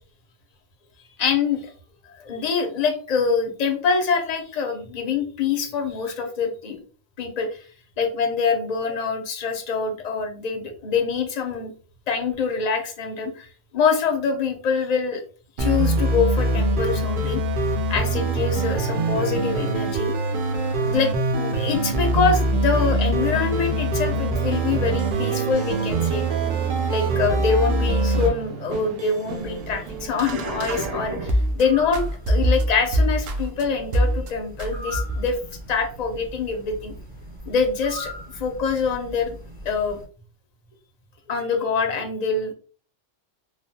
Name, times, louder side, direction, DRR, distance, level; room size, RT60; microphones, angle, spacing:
voice 1, 1.2-1.7 2.1-6.8 7.2-7.7 8.0-11.7 12.1-15.2 15.6-17.4 17.9-20.1 20.9-35.4 35.7-36.9 37.5-39.3 39.6-40.0 41.3-42.5, left 5 dB, 50° left, 4 dB, 0.5 m, -25 dB
sound 1, 15.6-28.3, right 2 dB, 60° right, 0.6 m, -23 dB
sound 2, 21.9-31.6 31.9-33.6 33.9-34.3 34.6-35.4, right 1 dB, 80° right, 0.9 m, -28 dB
sound 3, 29.3-40.0, equal, 10° right, 0.7 m, -40 dB
3.1 x 2.1 x 2.6 m, 0.39 s
omnidirectional pair, 1.3 m